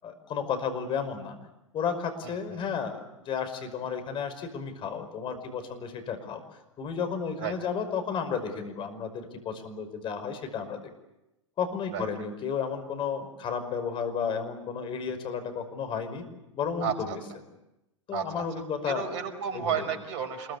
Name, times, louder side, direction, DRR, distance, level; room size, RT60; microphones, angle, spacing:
voice 1, 0.0-1.4 1.7-6.4 6.8-10.8 11.6-16.2 16.5-17.2 18.1-19.1 19.5-19.9, left 6 dB, 30° left, 7 dB, 5.5 m, -32 dB
voice 2, 2.2-2.6 7.4-7.5 11.9-12.1 16.8-17.2 18.1-18.4 18.8-20.6, right 7 dB, 50° right, 7 dB, 5.4 m, -32 dB
27.0 x 22.5 x 8.4 m, 0.91 s
figure-of-eight pair, 95°, 16 cm